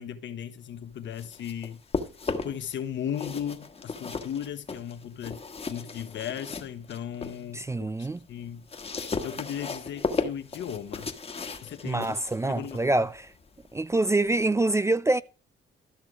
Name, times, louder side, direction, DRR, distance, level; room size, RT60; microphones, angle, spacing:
voice 1, 0.0-1.8 2.4-5.4 5.7-8.7 8.9-11.1 11.6-12.2 12.5-12.9, left 9 dB, 70° left, 1.3 m, -36 dB
sound 1, 0.9-2.7 3.1-7.4 7.8-14.4, left 4 dB, 30° left, 1.4 m, -36 dB
voice 2, 7.5-8.2 11.8-13.3 13.7-15.2, right 2 dB, 15° right, 0.4 m, -25 dB
13.0 x 6.2 x 5.0 m
cardioid pair, 90°, 20 cm